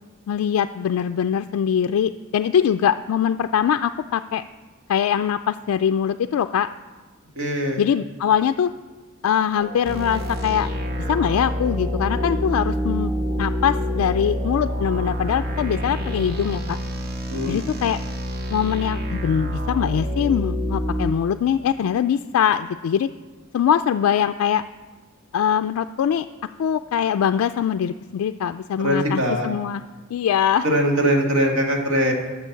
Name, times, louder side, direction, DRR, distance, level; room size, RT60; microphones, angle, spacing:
voice 1, 0.3-4.4 4.9-6.7 7.8-8.7 9.2-10.7 11.1-13.1 13.4-16.8 17.5-18.0 18.5-23.1 23.5-24.6 25.3-26.3 26.6-29.8 30.1-30.7, left 8 dB, 80° left, 9 dB, 0.3 m, -22 dB
voice 2, 7.4-7.8 17.3-17.5 28.8-29.5 30.6-32.1, equal, 85° right, 1 dB, 1.9 m, -21 dB
sound 1, 9.6-16.6, left 1 dB, 20° right, 0.7 m, -38 dB
sound 2, 9.9-21.1, equal, 45° right, 0.9 m, -27 dB
10.0 x 6.8 x 7.0 m, 1.3 s
head